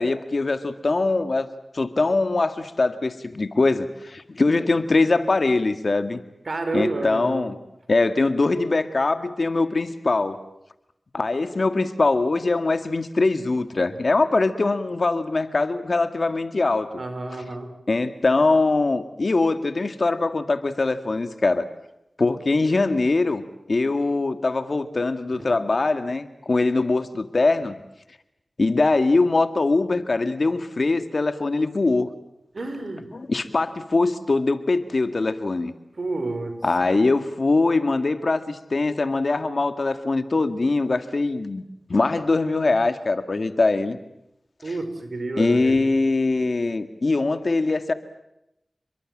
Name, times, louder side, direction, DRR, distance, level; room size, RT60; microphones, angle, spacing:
voice 1, 0.0-1.5 1.7-6.2 6.7-7.6 7.9-10.4 11.1-17.0 17.9-21.7 22.2-27.8 28.6-32.1 33.1-35.7 36.6-41.6 41.9-44.0 45.4-47.9, left 3 dB, 65° left, 9 dB, 2.0 m, -22 dB
voice 2, 6.4-7.5 17.0-17.7 25.3-25.5 32.5-33.0 36.0-36.6 44.6-45.8, right 2 dB, 75° right, 8 dB, 4.8 m, -29 dB
29.0 x 22.5 x 7.6 m, 0.85 s
cardioid pair, 45°, 0 cm